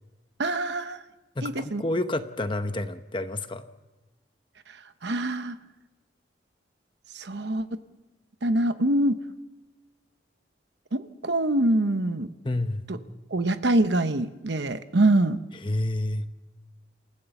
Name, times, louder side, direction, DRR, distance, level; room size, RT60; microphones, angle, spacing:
voice 1, 0.4-1.0 1.4-1.8 5.0-5.6 7.1-7.7 8.4-9.2 10.9-12.3 13.3-15.4, right 1 dB, 65° right, 10 dB, 1.0 m, -24 dB
voice 2, 1.4-3.7 12.4-12.8 15.5-16.3, left 1 dB, 25° left, 9 dB, 0.8 m, -29 dB
28.0 x 15.5 x 7.1 m, 1.2 s
head